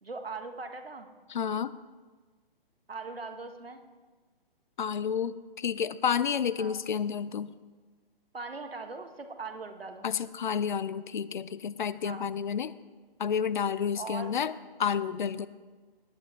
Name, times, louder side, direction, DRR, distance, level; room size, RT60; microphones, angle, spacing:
voice 1, 0.0-1.1 2.9-3.8 6.6-6.7 8.3-10.1 12.0-12.2 14.0-14.4, right 4 dB, 80° right, 6 dB, 1.3 m, -40 dB
voice 2, 1.3-1.7 4.8-7.5 10.0-12.7 13.2-14.5 14.8-15.5, left 7 dB, 55° left, 17 dB, 0.5 m, -30 dB
17.5 x 9.6 x 3.1 m, 1.4 s
figure-of-eight pair, 130°, 29 cm